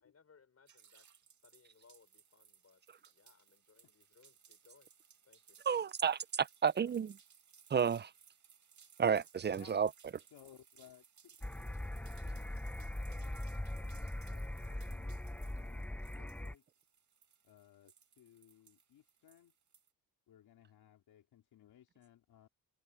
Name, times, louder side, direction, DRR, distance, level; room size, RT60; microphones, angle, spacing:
voice 1, 0.0-2.8 3.1-4.9 5.2-5.6, left 5 dB, 40° left, 6.2 m, -67 dB
sound 1, 0.7-19.9, right 7 dB, 50° right, 2.3 m, -64 dB
voice 2, 5.7-7.1 7.7-8.1 9.0-9.9, right 7 dB, 30° right, 0.4 m, -31 dB
voice 3, 10.3-16.6 17.4-19.5 20.3-22.5, left 11 dB, 80° left, 4.1 m, -63 dB
sound 2, 11.4-16.5, left 1 dB, 5° left, 0.7 m, -41 dB
cardioid pair, 110°, 37 cm